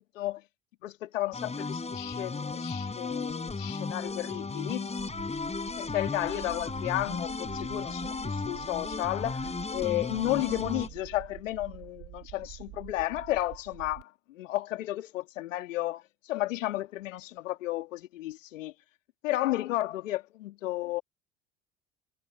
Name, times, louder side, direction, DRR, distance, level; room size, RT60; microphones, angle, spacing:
voice 1, 0.8-4.9 5.8-18.7 19.2-21.0, left 15 dB, 75° left, 2.8 m, -33 dB
sound 1, 1.3-10.9, left 4 dB, 15° left, 4.2 m, -35 dB
sound 2, 5.0-14.0, right 18 dB, 55° right, 4.4 m, -47 dB
hypercardioid pair, 75°, 39 cm